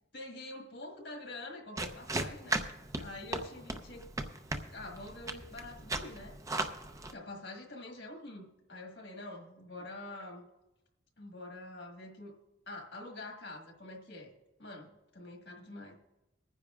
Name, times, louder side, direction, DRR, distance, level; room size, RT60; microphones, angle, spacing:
voice 1, 0.1-2.6 3.0-4.1 4.7-6.4 7.1-10.5 11.2-12.3 12.7-14.3 14.6-15.9, left 2 dB, 65° left, 1 dB, 1.6 m, -46 dB
sound 1, 1.8-7.1, right 2 dB, 15° right, 0.6 m, -37 dB
22.0 x 9.9 x 2.4 m, 0.98 s
head